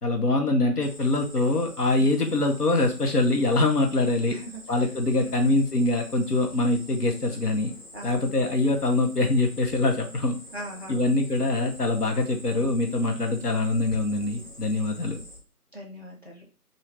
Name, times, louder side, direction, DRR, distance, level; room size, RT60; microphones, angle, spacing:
voice 1, 0.0-4.4 4.7-7.7 8.0-10.4 10.9-15.2, left 2 dB, 75° left, 3 dB, 1.0 m, -24 dB
Cricket, 0.8-15.4, equal, ahead, 0.9 m, -46 dB
voice 2, 4.3-4.6 5.1-5.4 7.9-8.3 10.5-11.1 15.7-16.5, right 1 dB, 45° left, -2 dB, 0.6 m, -40 dB
2.7 x 2.4 x 3.3 m, 0.34 s
figure-of-eight pair, 165°, 47 cm